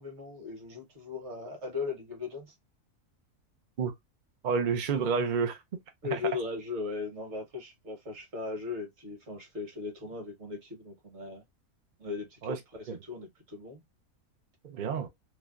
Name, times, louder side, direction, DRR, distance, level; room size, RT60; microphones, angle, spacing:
voice 1, 0.0-2.5 6.0-11.4 12.0-13.8, left 4 dB, 50° right, 1.4 m, -38 dB
voice 2, 4.4-5.6 6.1-6.2 12.4-12.6 12.9-13.0 14.6-15.1, right 5 dB, 70° right, 0.4 m, -29 dB
3.1 x 2.3 x 2.3 m
omnidirectional pair, 1.6 m